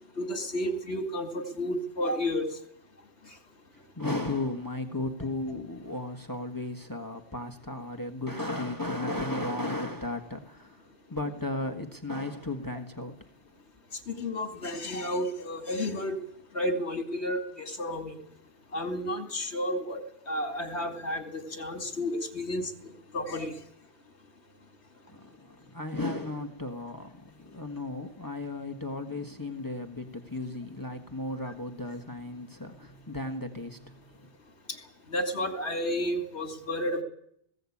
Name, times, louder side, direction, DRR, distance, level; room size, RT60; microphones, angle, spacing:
voice 1, 0.2-2.5 14.1-16.2 16.5-18.2 18.7-20.0 20.3-23.6 34.7-34.8 35.1-37.0, left 1 dB, 70° left, 6 dB, 2.7 m, -31 dB
voice 2, 3.7-13.2 25.1-34.3, left 2 dB, 20° left, 5 dB, 1.5 m, -35 dB
19.0 x 16.5 x 8.6 m, 0.71 s
omnidirectional pair, 1.1 m